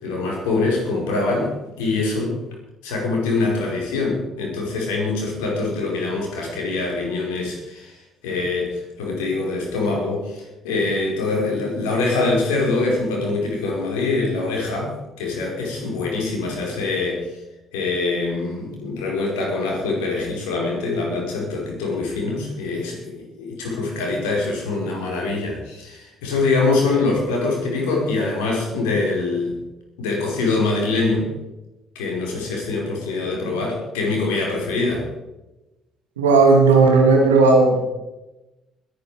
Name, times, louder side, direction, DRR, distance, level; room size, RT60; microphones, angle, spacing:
voice 1, 0.0-2.4 2.8-8.0 8.2-17.3 17.7-29.6 30.0-31.3 31.9-35.1, left 3 dB, 75° left, -1 dB, 4.8 m, -24 dB
voice 2, 36.2-37.8, right 3 dB, 80° right, 1 dB, 2.8 m, -14 dB
21.0 x 9.5 x 5.0 m, 1.0 s
figure-of-eight pair, 50°, 0 cm